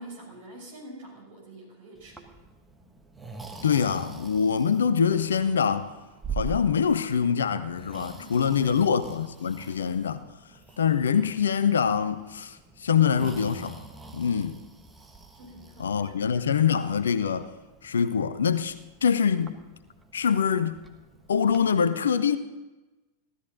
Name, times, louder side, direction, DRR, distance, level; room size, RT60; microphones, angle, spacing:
voice 1, 0.0-2.3 8.1-8.8 14.2-14.5 15.3-16.2, right 1 dB, 55° right, 5.8 m, -46 dB
Breathing, 1.9-21.6, right 4 dB, 10° right, 1.2 m, -44 dB
voice 2, 3.6-5.9 6.4-10.2 10.8-13.8 14.1-14.6 15.8-17.5 17.8-18.7 19.0-19.6 20.1-20.8 21.3-22.4, left 7 dB, 70° left, 0.7 m, -24 dB
16.0 x 13.0 x 4.0 m
figure-of-eight pair, 90°, 0 cm